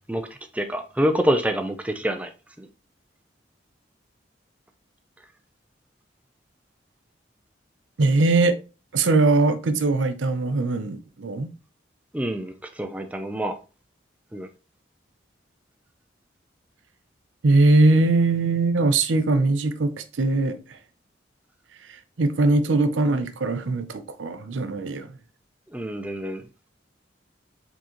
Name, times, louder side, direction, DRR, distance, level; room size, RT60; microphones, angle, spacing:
voice 1, 0.5-2.3 2.6-2.7 12.1-13.6 14.3-14.5 25.7-26.4, equal, 10° right, 0.4 m, -26 dB
voice 2, 8.0-8.6 8.9-11.5 17.4-20.6 22.2-25.1, right 2 dB, 85° right, 0.6 m, -21 dB
4.8 x 3.8 x 2.9 m
head